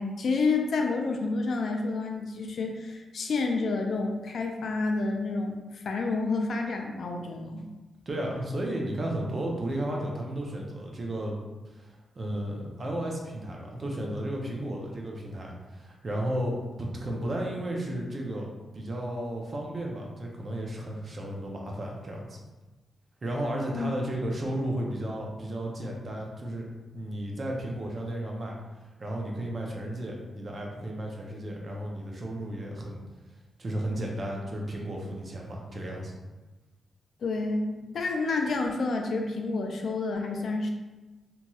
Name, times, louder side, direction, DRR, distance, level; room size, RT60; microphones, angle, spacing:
voice 1, 0.0-7.6 23.7-23.9 37.2-40.7, left 3 dB, 60° left, 3 dB, 0.3 m, -29 dB
voice 2, 8.1-11.4 11.6-22.4 23.2-26.7 26.9-28.5 29.0-33.0 33.6-36.1, right 1 dB, 35° right, -1 dB, 0.5 m, -33 dB
2.9 x 2.7 x 2.3 m, 1.2 s
wide cardioid pair, 150°, 0 cm